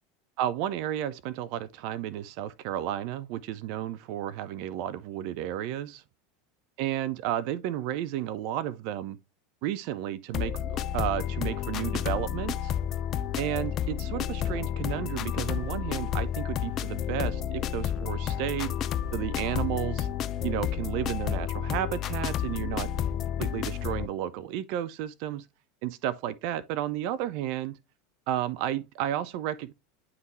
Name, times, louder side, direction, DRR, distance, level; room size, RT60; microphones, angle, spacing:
voice 1, 0.4-6.0 6.8-9.2 9.6-10.6 10.9-12.7 13.4-18.7 19.1-20.1 20.4-22.9 23.4-25.5 25.8-27.7 28.3-29.7, right 12 dB, 55° right, 0.4 m, -32 dB
sound 1, 10.3-24.1, left 9 dB, 40° left, 0.4 m, -31 dB
9.4 x 3.6 x 3.1 m
figure-of-eight pair, 80°, 0 cm